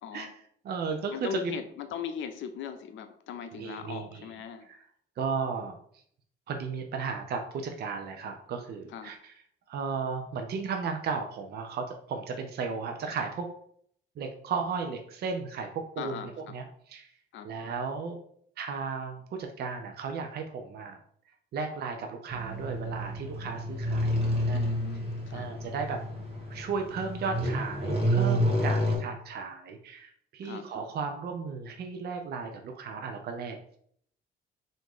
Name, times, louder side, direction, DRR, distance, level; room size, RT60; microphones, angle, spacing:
voice 1, 0.0-0.3 1.1-4.7 8.9-9.1 16.0-16.5 17.3-17.5 24.5-25.5 30.4-30.7, left 7 dB, 75° left, 8 dB, 0.5 m, -39 dB
voice 2, 0.6-1.5 3.5-4.3 4.7-4.8 5.2-5.8 6.5-9.3 9.7-13.5 14.2-17.1 17.4-18.2 18.6-21.0 21.5-24.6 25.3-26.0 26.5-33.6, right 5 dB, 55° right, 4 dB, 0.5 m, -35 dB
sound 1, 22.3-29.0, equal, 30° right, 1.4 m, -29 dB
2.9 x 2.6 x 3.6 m, 0.63 s
cardioid pair, 90°, 20 cm